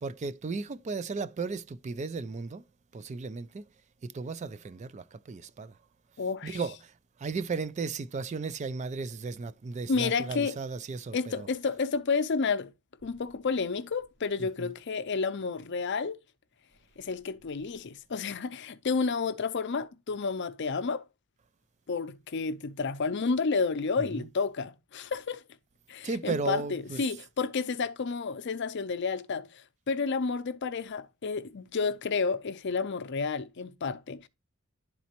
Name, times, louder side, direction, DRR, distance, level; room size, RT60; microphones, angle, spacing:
voice 1, 0.0-2.6 2.9-3.7 4.0-5.8 6.4-6.9 7.2-11.5 14.4-14.7 24.0-24.3 26.0-27.1, right 4 dB, 35° right, 0.4 m, -35 dB
voice 2, 6.2-6.6 9.9-10.6 11.1-12.7 13.0-16.2 17.0-21.0 21.9-25.4 25.9-29.6 29.9-34.3, left 4 dB, 55° left, 0.6 m, -31 dB
11.0 x 4.1 x 2.9 m
head